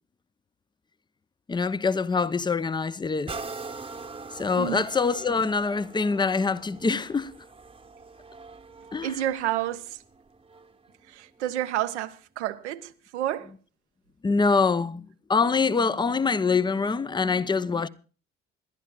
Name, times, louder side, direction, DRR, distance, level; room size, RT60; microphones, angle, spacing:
voice 1, 1.5-3.3 4.3-7.3 8.9-9.2 14.2-15.0 15.3-17.9, left 4 dB, 15° left, 0.5 m, -24 dB
sound 1, 3.3-10.9 11.5-11.6, right 4 dB, 15° right, 0.9 m, -42 dB
voice 2, 9.0-10.0 11.1-13.5, right 13 dB, 75° right, 0.7 m, -30 dB
26.5 x 11.5 x 2.3 m
figure-of-eight pair, 50°, 35 cm